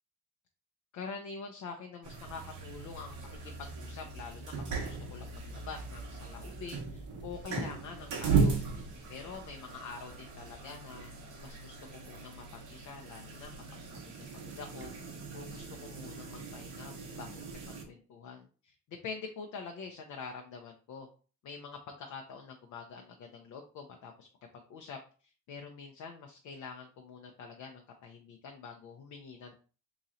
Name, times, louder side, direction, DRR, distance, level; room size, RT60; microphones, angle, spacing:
voice 1, 0.9-3.2 3.4-8.6 9.1-11.1 11.4-13.8 14.2-14.9 15.3-21.1 21.4-24.3 24.5-29.6, left 5 dB, 75° left, 3 dB, 0.6 m, -46 dB
sound 1, 2.0-17.8, right 5 dB, 90° right, 1.1 m, -37 dB
sound 2, 2.2-15.0, right 2 dB, 40° right, 0.6 m, -49 dB
3.0 x 2.7 x 3.8 m, 0.38 s
cardioid pair, 90°, 30 cm